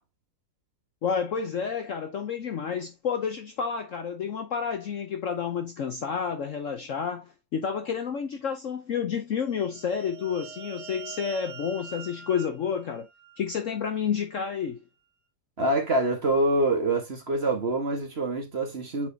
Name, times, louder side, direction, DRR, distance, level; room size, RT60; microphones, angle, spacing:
voice 1, 1.0-13.1 13.4-14.8, left 7 dB, 55° left, 0.9 m, -30 dB
sound 1, 9.5-14.0, right 7 dB, 80° right, 1.9 m, -45 dB
voice 2, 15.6-19.1, right 2 dB, 35° right, 1.5 m, -25 dB
8.4 x 4.5 x 2.7 m
omnidirectional pair, 1.9 m